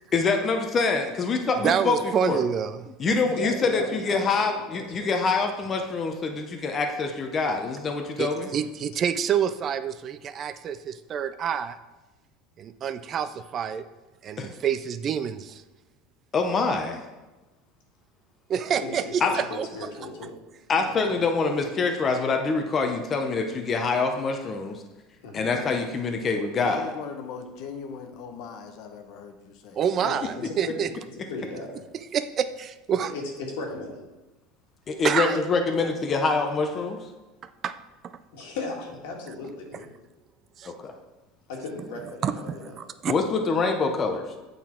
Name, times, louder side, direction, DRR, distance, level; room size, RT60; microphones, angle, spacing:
voice 1, 0.1-2.4 3.0-8.5 14.4-14.5 16.3-17.0 19.2-19.3 20.7-24.8 25.3-26.9 34.9-37.0 40.6-40.9 43.1-44.2, left 4 dB, 30° left, 4 dB, 0.7 m, -25 dB
voice 2, 1.6-3.2 8.2-11.8 12.6-13.8 14.2-15.6 18.5-19.7 29.8-30.9 32.1-33.1 35.0-35.4 37.6-37.7 40.6-40.7 42.2-43.1, right 8 dB, 35° right, 12 dB, 0.3 m, -27 dB
voice 3, 3.3-4.5 4.7-5.1 18.6-20.3 20.7-20.9 25.2-25.4 30.0-30.2 30.4-30.9 31.3-31.8 33.0-34.0 38.3-39.9 41.5-42.8, left 3 dB, 80° left, 0 dB, 1.7 m, -36 dB
voice 4, 25.6-25.9 26.6-29.8, left 6 dB, 55° left, 6 dB, 0.9 m, -38 dB
8.3 x 3.9 x 4.4 m, 1.1 s
supercardioid pair, 130°, 0 cm